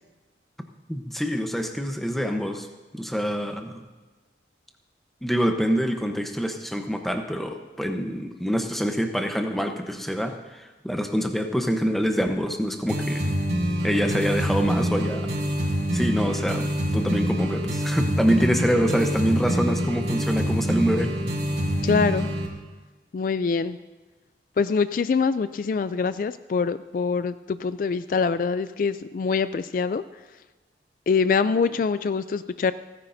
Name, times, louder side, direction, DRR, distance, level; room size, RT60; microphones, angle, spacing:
voice 1, 0.9-2.7 2.9-3.8 5.2-13.3 13.8-15.3 15.9-21.1, equal, ahead, 4 dB, 0.9 m, -25 dB
sound 1, 12.9-22.5, equal, 75° right, 2.7 m, -26 dB
voice 2, 21.8-22.3 23.1-23.8 24.6-30.0 31.1-32.7, left 5 dB, 50° left, 13 dB, 0.3 m, -24 dB
29.5 x 9.9 x 2.7 m, 1.3 s
head